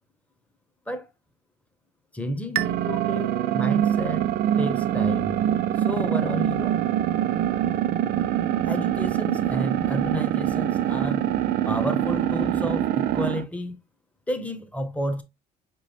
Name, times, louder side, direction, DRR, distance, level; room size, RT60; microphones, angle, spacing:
voice 1, 2.1-4.3 4.6-5.4 5.8-6.8 8.6-11.3 11.7-13.8 14.3-15.2, equal, 10° left, 0.7 m, -31 dB
sound 1, 2.5-13.4, right 11 dB, 70° right, 0.5 m, -24 dB
4.9 x 3.1 x 2.7 m
cardioid pair, 110°, 17 cm